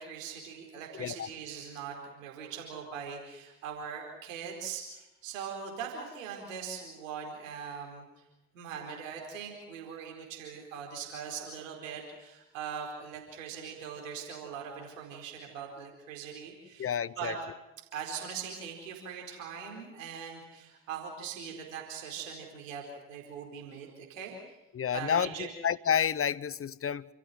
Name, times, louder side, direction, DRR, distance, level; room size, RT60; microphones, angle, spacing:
voice 1, 0.0-8.1 8.5-16.9 17.2-17.4 17.9-24.6 24.9-25.5, right 7 dB, 85° right, 4.6 m, -41 dB
voice 2, 16.8-17.4 24.7-27.1, left 8 dB, 35° left, 1.0 m, -30 dB
29.5 x 14.5 x 9.4 m
hypercardioid pair, 50°, 38 cm